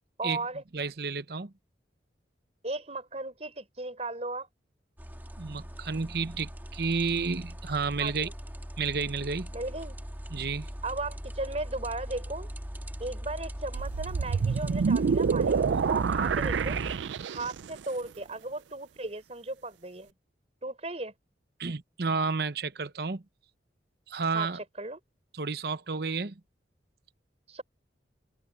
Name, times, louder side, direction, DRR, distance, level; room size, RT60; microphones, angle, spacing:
voice 1, 0.2-0.6 2.6-4.5 8.0-8.3 9.5-10.0 10.8-12.5 13.0-16.8 17.3-20.1 20.6-21.1 24.3-25.0 27.5-27.6, right 2 dB, 35° right, 4.3 m, -36 dB
voice 2, 0.7-1.5 5.4-8.3 8.8-9.5 10.3-10.7 21.6-23.2 24.1-24.6 25.3-26.4, right 4 dB, 60° right, 0.9 m, -31 dB
sound 1, 5.0-17.0, equal, 10° right, 2.1 m, -40 dB
sound 2, 13.7-17.7, right 6 dB, 85° right, 0.4 m, -27 dB
open air
head